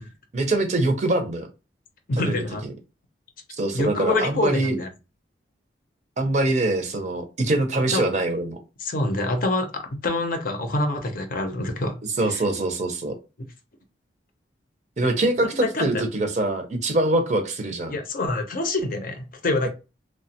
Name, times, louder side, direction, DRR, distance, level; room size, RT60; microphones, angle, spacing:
voice 1, 0.3-1.5 2.3-2.4 3.6-4.7 6.2-8.6 12.2-13.1 15.0-18.0, right 2 dB, 40° right, 5 dB, 0.6 m, -23 dB
voice 2, 2.1-2.6 3.7-4.9 7.9-8.0 8.8-12.0 12.3-12.4 15.6-16.0 17.9-19.7, left 2 dB, 50° left, 5 dB, 0.6 m, -26 dB
2.9 x 2.1 x 2.8 m, 0.29 s
head